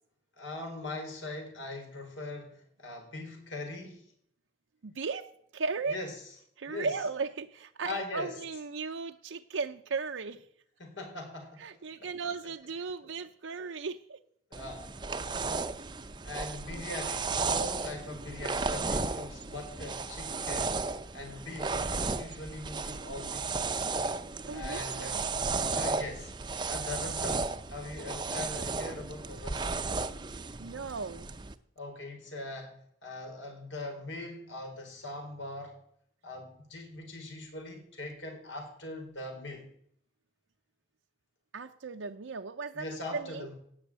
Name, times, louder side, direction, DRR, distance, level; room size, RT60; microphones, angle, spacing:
voice 1, 0.4-4.1 5.8-7.1 7.8-8.4 10.8-12.5 12.8-13.1 13.6-13.7 14.5-14.9 16.2-20.8 21.1-23.6 24.5-25.2 25.7-26.3 26.7-29.9 31.8-32.8 33.0-35.8 36.2-39.7 42.7-43.5, left 2 dB, 80° left, 3 dB, 4.6 m, -41 dB
voice 2, 4.8-6.0 6.6-10.5 11.6-14.2 24.5-25.2 30.6-31.3 41.5-42.9 43.1-43.5, right 4 dB, 85° right, 4 dB, 0.6 m, -36 dB
sound 1, 14.5-31.5, right 4 dB, 25° right, 0.6 m, -34 dB
17.0 x 6.4 x 8.7 m, 0.67 s
head